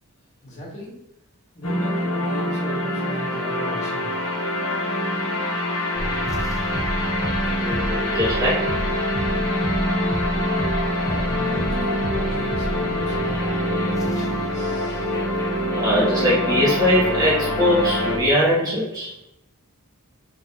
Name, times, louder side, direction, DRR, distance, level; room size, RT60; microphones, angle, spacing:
voice 1, 0.4-1.0 1.5-4.1 11.0-15.1, left 1 dB, 30° left, -3 dB, 1.4 m, -37 dB
sound 1, 1.6-18.2, left 1 dB, 80° left, 1.1 m, -25 dB
sound 2, 5.9-18.3, equal, 15° left, 0.4 m, -32 dB
voice 2, 7.6-8.7 15.8-19.1, equal, 15° right, -7 dB, 1.1 m, -21 dB
5.0 x 3.5 x 2.4 m, 0.85 s
head